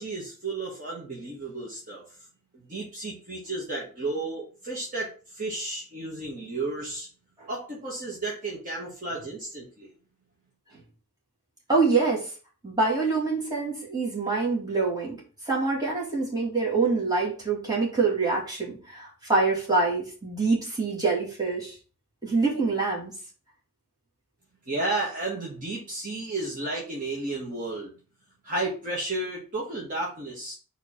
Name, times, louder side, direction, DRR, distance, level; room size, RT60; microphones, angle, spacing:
voice 1, 0.0-2.0 2.5-7.1 7.5-9.9 24.7-27.9 28.4-30.5, right 2 dB, 35° right, -5 dB, 1.6 m, -33 dB
voice 2, 11.7-12.2 12.6-15.2 15.5-21.7 22.2-23.1, right 3 dB, 15° right, -4 dB, 2.3 m, -25 dB
4.7 x 4.0 x 5.6 m, 0.38 s
head